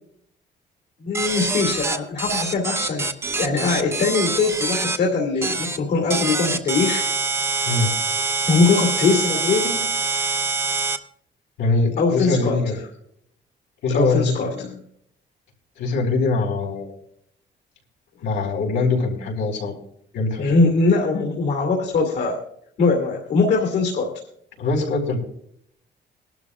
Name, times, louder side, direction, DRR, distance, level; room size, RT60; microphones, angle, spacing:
voice 1, 1.0-7.0 8.5-9.9 12.0-12.8 13.9-14.8 20.4-22.4 22.8-24.1, left 4 dB, 65° left, 0 dB, 2.6 m, -21 dB
sound 1, 1.1-5.0 5.4-5.8 6.1-11.0, right 4 dB, 15° right, 0.8 m, -25 dB
voice 2, 11.6-12.8 13.8-14.3 15.8-16.9 18.2-19.8 20.1-20.5 24.6-25.2, left 3 dB, 85° left, -2 dB, 4.4 m, -22 dB
22.0 x 12.5 x 2.4 m, 0.69 s
cardioid pair, 150°, 19 cm